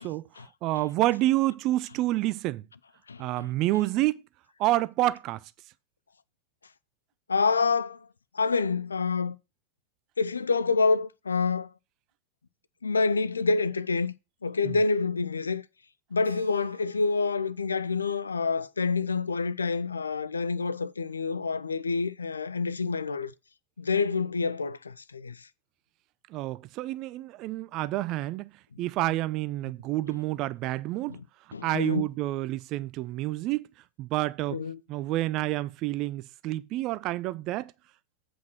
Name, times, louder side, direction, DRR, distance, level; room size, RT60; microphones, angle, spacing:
voice 1, 0.6-2.7 3.2-4.2 4.6-5.4 14.6-14.8 26.3-28.5 28.8-31.2 31.6-33.7 34.0-34.6 34.9-37.7, right 16 dB, 40° right, 0.5 m, -28 dB
voice 2, 3.1-3.5 7.3-8.1 8.3-9.4 10.2-11.7 12.8-14.1 14.4-15.6 16.1-23.3 23.8-25.5 31.1-31.2 31.5-32.0 34.5-34.8, left 4 dB, 75° left, 0.5 m, -27 dB
Keyboard (musical), 16.2-19.2, right 4 dB, 80° right, 0.9 m, -50 dB
8.1 x 5.1 x 5.9 m
figure-of-eight pair, 90°, 0 cm